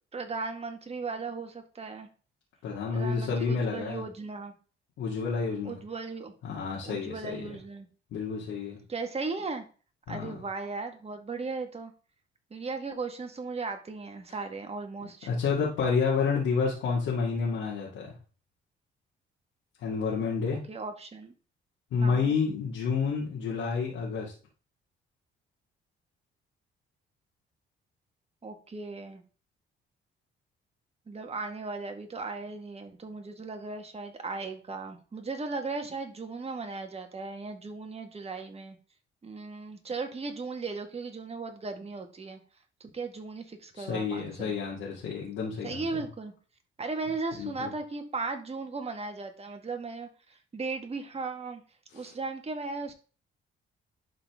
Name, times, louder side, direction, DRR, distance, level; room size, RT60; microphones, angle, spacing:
voice 1, 0.1-2.1 2.9-4.5 5.6-6.3 6.8-7.9 8.9-9.7 10.1-11.9 12.5-15.3 20.7-21.3 22.0-22.4 28.4-29.2 31.1-38.8 39.2-42.4 42.8-44.5 45.6-46.3 46.8-51.6 51.9-52.9, right 3 dB, 30° right, 5 dB, 1.8 m, -37 dB
voice 2, 2.6-4.0 5.0-5.8 6.4-7.4 8.1-8.8 10.1-10.4 15.3-18.1 19.8-20.6 21.9-24.3 43.8-45.8 47.4-47.7 52.0-52.1, left 5 dB, 85° left, -5 dB, 2.2 m, -29 dB
11.5 x 4.2 x 3.7 m, 0.37 s
cardioid pair, 90°, 20 cm